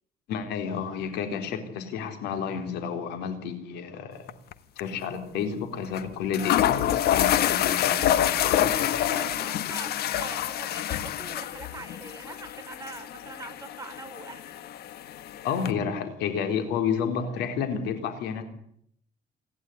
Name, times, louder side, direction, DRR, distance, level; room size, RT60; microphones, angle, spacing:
voice 1, 0.3-4.3 4.8-9.3 15.4-18.4, left 7 dB, 85° left, 7 dB, 4.1 m, -31 dB
sound 1, 4.3-4.5 4.8-4.9 5.9-6.0 6.3-15.7, left 11 dB, 70° left, 1.4 m, -27 dB
voice 2, 9.2-14.6, right 3 dB, 20° right, 6 dB, 3.9 m, -43 dB
28.0 x 11.5 x 9.9 m, 0.67 s
cardioid pair, 110°, 17 cm